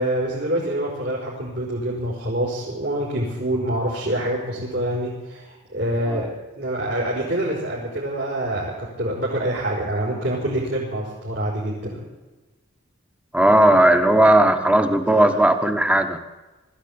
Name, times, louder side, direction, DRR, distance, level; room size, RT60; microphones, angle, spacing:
voice 1, 0.0-6.3 6.5-12.0 15.1-15.3, right 1 dB, 60° right, -4 dB, 5.3 m, -26 dB
voice 2, 13.3-16.2, right 1 dB, 5° right, 8 dB, 1.3 m, -16 dB
22.0 x 14.0 x 8.8 m, 1.2 s
head